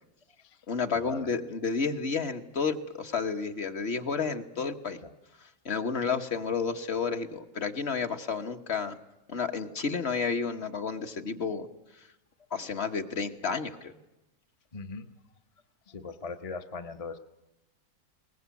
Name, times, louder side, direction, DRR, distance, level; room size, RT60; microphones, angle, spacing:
voice 1, 0.7-5.0 5.6-9.0 9.3-11.7 12.5-13.9, left 5 dB, 45° left, 6 dB, 1.4 m, -31 dB
voice 2, 14.7-15.1 15.9-17.2, left 4 dB, 30° left, 7 dB, 0.7 m, -39 dB
21.5 x 19.5 x 8.3 m, 0.97 s
omnidirectional pair, 1.5 m